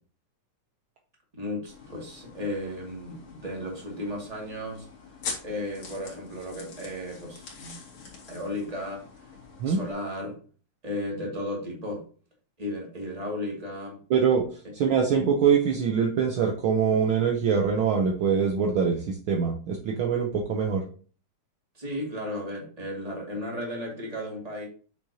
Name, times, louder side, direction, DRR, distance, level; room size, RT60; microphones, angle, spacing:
voice 1, 1.3-4.9 5.4-7.8 8.3-9.0 9.6-10.4 10.8-12.0 12.6-14.0 21.7-24.7, left 1 dB, 15° right, -2 dB, 2.2 m, -34 dB
sound 1, 1.7-9.9, left 5 dB, 65° left, 3.2 m, -44 dB
voice 2, 14.1-14.4 14.7-20.8, right 6 dB, 70° right, 2 dB, 1.2 m, -24 dB
8.3 x 6.3 x 2.8 m, 0.41 s
omnidirectional pair, 3.3 m